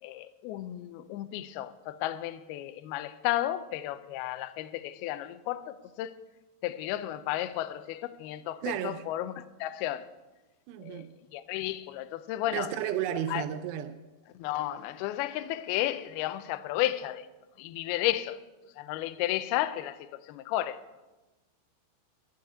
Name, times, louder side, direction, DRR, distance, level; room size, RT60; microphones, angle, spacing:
voice 1, 0.0-6.2 6.6-10.1 10.8-12.7 13.1-13.4 14.3-17.3 17.6-18.4 18.7-20.8, left 14 dB, 85° left, 2.2 m, -33 dB
voice 2, 8.6-9.0 10.7-11.1 12.5-14.0, right 11 dB, 80° right, 2.7 m, -33 dB
14.0 x 6.4 x 8.4 m
omnidirectional pair, 5.1 m